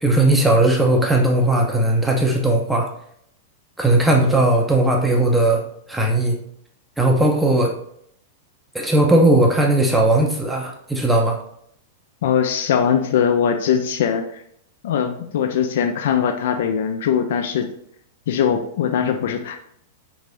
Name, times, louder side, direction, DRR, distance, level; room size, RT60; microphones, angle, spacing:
voice 1, 0.0-2.9 3.8-5.6 5.9-6.4 7.0-7.7 8.7-11.4, right 1 dB, 5° right, 0 dB, 0.5 m, -17 dB
voice 2, 12.2-14.4 14.8-17.7 18.3-19.6, left 8 dB, 60° left, 5 dB, 0.3 m, -21 dB
3.3 x 3.3 x 2.5 m, 0.69 s
figure-of-eight pair, 95°, 0 cm